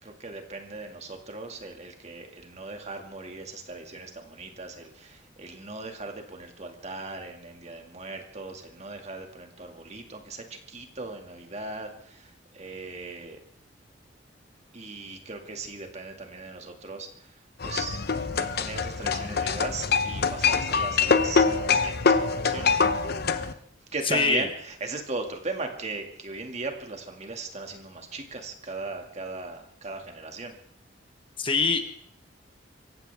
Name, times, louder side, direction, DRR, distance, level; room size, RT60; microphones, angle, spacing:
voice 1, 0.0-13.4 14.7-17.3 17.6-18.0 18.3-22.9 23.9-30.5, right 3 dB, 35° right, 4 dB, 2.3 m, -38 dB
sound 1, 17.6-23.5, left 5 dB, 55° left, 0.9 m, -24 dB
voice 2, 24.1-24.5 31.4-31.8, left 4 dB, 30° left, 7 dB, 1.2 m, -23 dB
25.0 x 16.0 x 3.6 m, 0.64 s
head